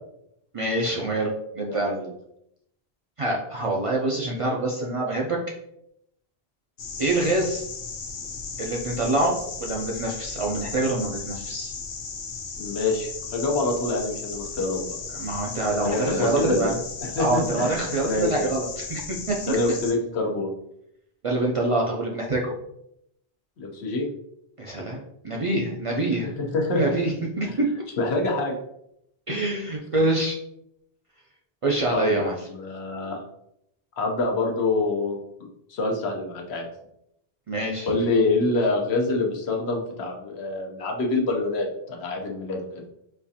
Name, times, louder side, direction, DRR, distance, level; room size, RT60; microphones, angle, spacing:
voice 1, 0.5-2.0 3.2-5.4 7.0-7.7 8.6-9.3 9.6-11.7 15.1-16.7 17.2-19.0 19.3-19.6 21.2-22.5 24.6-26.3 26.7-27.7 29.3-30.4 31.6-32.3 37.5-37.9, right 2 dB, 50° right, -2 dB, 0.4 m, -25 dB
voice 2, 1.6-2.1 12.6-15.0 15.8-16.7 17.0-18.5 19.5-20.5 23.6-24.1 26.2-27.0 27.4-27.5 28.0-28.6 31.9-33.2 34.0-35.2 35.7-36.7 37.9-42.8, left 2 dB, 85° left, 1 dB, 1.0 m, -26 dB
sound 1, 6.8-19.9, left 5 dB, 65° left, 0.7 m, -36 dB
4.2 x 2.4 x 2.7 m, 0.77 s
omnidirectional pair, 1.1 m